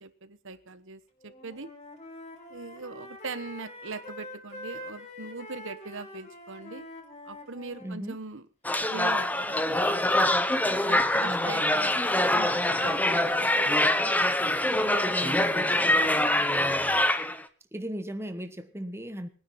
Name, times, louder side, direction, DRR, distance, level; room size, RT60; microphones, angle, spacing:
voice 1, 0.0-1.7 2.5-6.9 7.2-8.4 8.9-10.2 10.9-14.1 14.7-16.8, right 4 dB, 65° right, 1.2 m, -41 dB
Wind instrument woodwind instrument, 1.2-8.0, left 1 dB, 30° left, 5.3 m, -45 dB
voice 2, 7.8-8.2 11.2-11.9 15.1-15.7 17.7-19.3, equal, 10° right, 1.2 m, -37 dB
sound 1, 8.6-17.4, left 1 dB, 10° left, 1.0 m, -24 dB
21.0 x 10.0 x 5.8 m
head